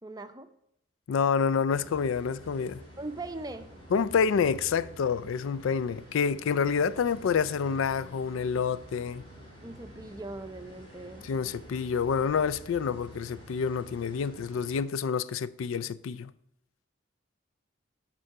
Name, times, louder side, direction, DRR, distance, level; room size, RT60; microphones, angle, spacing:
voice 1, 0.0-0.5 3.0-3.7 9.6-11.3, right 2 dB, 20° right, 0.5 m, -40 dB
voice 2, 1.1-2.8 3.9-9.2 11.2-16.3, left 6 dB, 80° left, 0.4 m, -28 dB
sound 1, 1.7-14.8, equal, 25° left, 2.2 m, -49 dB
11.0 x 3.8 x 6.5 m
head